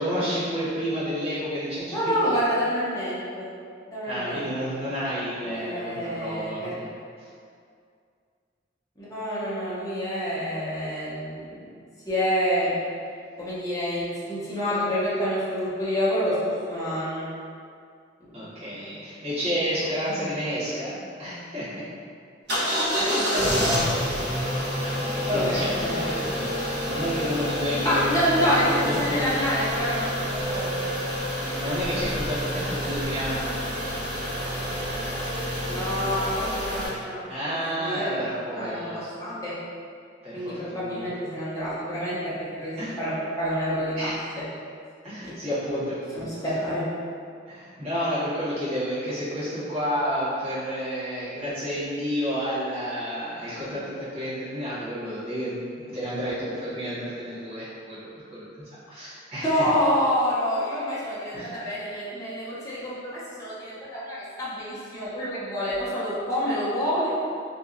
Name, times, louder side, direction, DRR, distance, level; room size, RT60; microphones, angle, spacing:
voice 1, 0.0-2.0 2.2-2.4 4.0-6.9 7.2-7.3 18.3-21.8 22.5-22.6 24.8-28.0 28.4-28.5 28.8-29.2 31.4-33.5 37.3-39.1 40.2-41.1 42.8-43.0 44.0-44.2 45.0-46.3 47.5-59.7 61.3-61.5, equal, 35° right, -12 dB, 1.1 m, -30 dB
voice 2, 1.9-3.5 3.9-4.4 4.7-4.8 5.4-6.8 9.0-11.7 12.1-12.7 13.4-16.4 16.7-17.3 18.2-19.2 19.8-19.9 23.0-23.9 25.3-26.1 27.8-30.8 35.6-38.2 38.5-38.9 39.2-39.5 40.3-44.1 45.2-45.3 46.1-46.9 59.4-67.1, equal, 20° left, -10 dB, 0.6 m, -28 dB
sound 1, 22.5-36.9, equal, 60° right, 1.0 m, -28 dB
2.7 x 2.2 x 2.4 m, 2.3 s
head